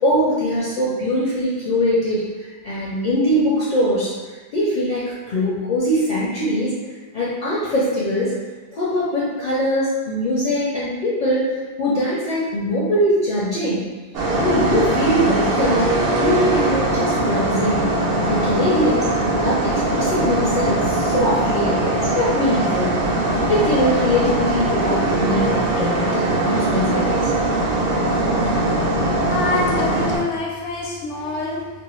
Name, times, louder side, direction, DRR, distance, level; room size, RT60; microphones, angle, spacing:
voice 1, 0.0-6.7 7.1-8.3 8.7-11.5 11.8-13.9 14.3-15.9 16.2-17.9 18.2-23.0 23.5-27.3, equal, 55° left, -7 dB, 0.5 m, -22 dB
sound 1, 14.1-30.2, right 2 dB, 65° right, 0.7 m, -21 dB
voice 2, 29.3-31.7, left 3 dB, 80° left, -3 dB, 0.9 m, -25 dB
2.4 x 2.1 x 3.0 m, 1.3 s
omnidirectional pair, 1.2 m